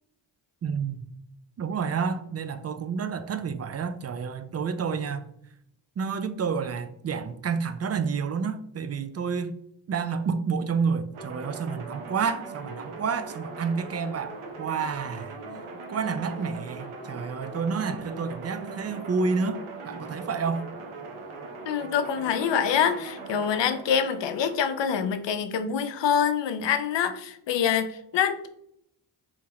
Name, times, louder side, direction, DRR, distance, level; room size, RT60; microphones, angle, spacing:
voice 1, 0.6-1.0 1.6-5.2 6.0-9.6 9.9-15.3 15.9-20.6, right 5 dB, 35° right, 0.4 m, -29 dB
sound 1, 11.1-24.9, right 3 dB, 75° right, 0.9 m, -40 dB
voice 2, 21.7-28.5, left 8 dB, 60° left, 0.6 m, -25 dB
3.5 x 2.9 x 2.9 m
cardioid pair, 55°, 49 cm